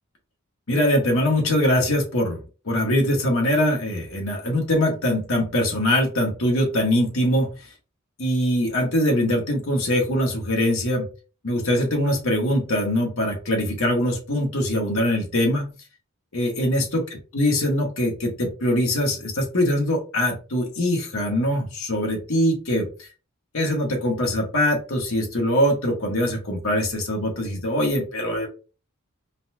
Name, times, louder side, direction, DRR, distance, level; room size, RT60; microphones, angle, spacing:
voice 1, 0.7-2.4 2.6-7.5 8.2-11.1 11.4-15.7 16.3-17.0 17.3-22.9 23.5-28.5, left 1 dB, 70° left, 0 dB, 1.3 m, -22 dB
4.0 x 2.3 x 2.7 m, 0.35 s
head